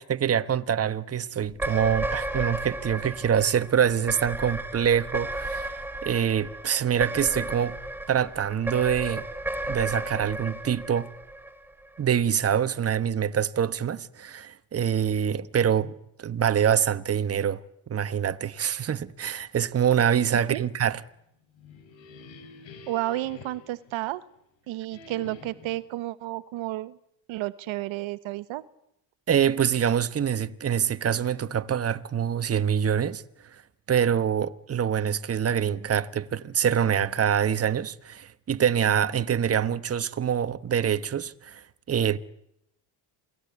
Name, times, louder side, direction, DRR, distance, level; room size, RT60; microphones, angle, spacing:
voice 1, 0.0-7.8 8.1-9.2 9.7-11.1 12.0-15.9 16.2-17.6 17.9-21.0 29.3-33.2 33.5-33.6 33.9-42.2, right 8 dB, 30° right, 1.2 m, -25 dB
sound 1, 1.5-12.0, right 1 dB, 5° right, 3.4 m, -34 dB
voice 2, 20.3-20.6 22.9-24.2 24.7-27.0 27.3-28.6, right 16 dB, 70° right, 1.2 m, -32 dB
sound 2, 21.3-24.4 24.9-25.9, left 4 dB, 65° left, 5.0 m, -48 dB
27.5 x 19.0 x 9.7 m
cardioid pair, 100°, 49 cm